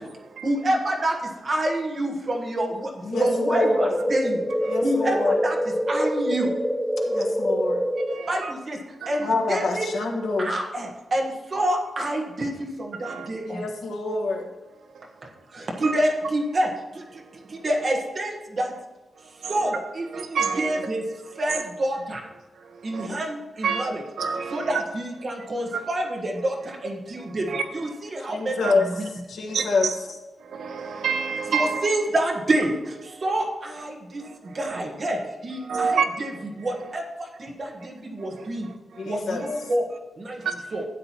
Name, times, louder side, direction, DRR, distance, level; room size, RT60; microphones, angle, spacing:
voice 1, 0.4-6.5 8.3-8.8 9.1-9.9 10.4-13.7 15.5-17.2 17.5-18.7 19.5-21.0 21.3-22.2 22.8-24.0 24.5-29.1 31.5-38.7 39.0-40.4 40.7-40.9, right 1 dB, 35° right, 1 dB, 1.4 m, -28 dB
voice 2, 3.1-3.8 4.7-5.4 7.1-7.8 9.2-10.5 13.5-14.5 23.0-23.1 28.3-28.9 29.3-29.9 39.0-39.4, left 3 dB, 80° left, 1 dB, 1.5 m, -26 dB
sound 1, 3.1-8.1, equal, ahead, 0.5 m, -25 dB
voice 3, 8.1-8.5 9.0-9.1 13.0-13.3 15.8-15.9 20.1-20.8 22.9-23.1 23.6-23.9 24.2-24.7 25.7-25.8 27.5-27.6 28.6-28.7 29.5-30.0 30.5-31.8 34.7-34.8 35.7-36.0 40.4-40.5, right 6 dB, 90° right, 6 dB, 0.9 m, -27 dB
12.5 x 8.8 x 3.0 m, 1.1 s
wide cardioid pair, 175°, 0 cm